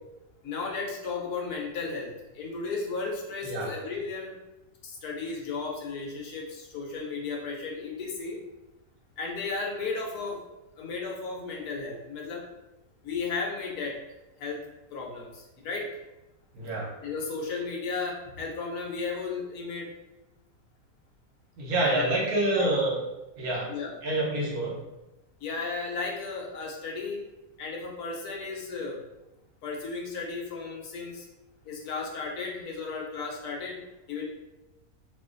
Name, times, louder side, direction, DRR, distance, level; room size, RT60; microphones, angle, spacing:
voice 1, 0.4-4.3 4.8-8.4 9.2-10.4 10.8-12.4 13.0-14.0 14.4-14.6 14.9-15.9 17.0-19.9 21.8-22.0 22.5-22.7 23.7-23.9 25.4-27.2 27.6-29.0 29.6-31.2 31.7-33.8 34.1-34.2, left 4 dB, 80° left, -1 dB, 1.3 m, -34 dB
voice 2, 16.5-16.9 21.6-23.0 23.4-23.7 24.0-24.7, right 1 dB, 75° right, -2 dB, 1.3 m, -27 dB
2.9 x 2.5 x 3.7 m, 0.97 s
omnidirectional pair, 1.6 m